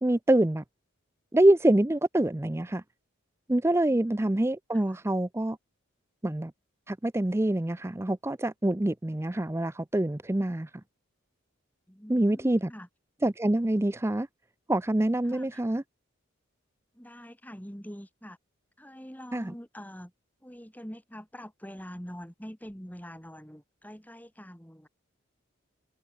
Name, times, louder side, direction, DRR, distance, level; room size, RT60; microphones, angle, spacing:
voice 1, 0.0-0.6 1.3-2.8 3.5-5.6 6.2-6.5 6.9-10.7 12.1-12.7 13.2-14.3 14.7-15.8 19.3-19.5, right 1 dB, 10° right, 0.5 m, -25 dB
voice 2, 3.9-4.3 4.7-5.0 11.9-12.9 15.3-15.6 16.9-18.4 18.8-20.1 20.4-24.9, equal, 10° left, 6.0 m, -45 dB
head